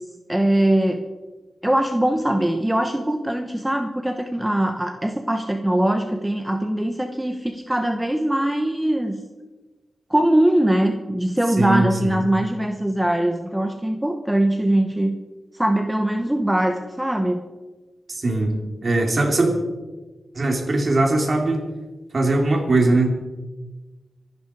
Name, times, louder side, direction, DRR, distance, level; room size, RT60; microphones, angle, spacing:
voice 1, 0.3-1.1 1.6-9.2 10.1-15.2 15.5-17.4, right 1 dB, 10° right, 6 dB, 1.1 m, -21 dB
voice 2, 11.6-12.1 18.1-18.5 18.8-19.5 20.4-21.6 22.1-23.1, right 2 dB, 45° right, 1 dB, 3.8 m, -20 dB
25.5 x 11.0 x 4.9 m, 1.2 s
wide cardioid pair, 115°, 0 cm